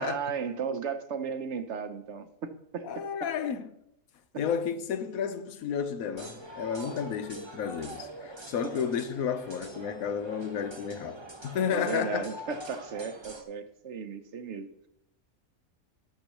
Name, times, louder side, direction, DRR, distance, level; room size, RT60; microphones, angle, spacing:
voice 1, 0.0-3.3 4.3-4.4 11.7-14.9, right 6 dB, 60° right, 1.0 m, -35 dB
voice 2, 2.8-3.7 4.4-12.3, left 7 dB, 90° left, 1.2 m, -32 dB
sound 1, 6.2-13.4, right 1 dB, 20° right, 1.0 m, -44 dB
17.5 x 6.7 x 3.0 m
omnidirectional pair, 1.4 m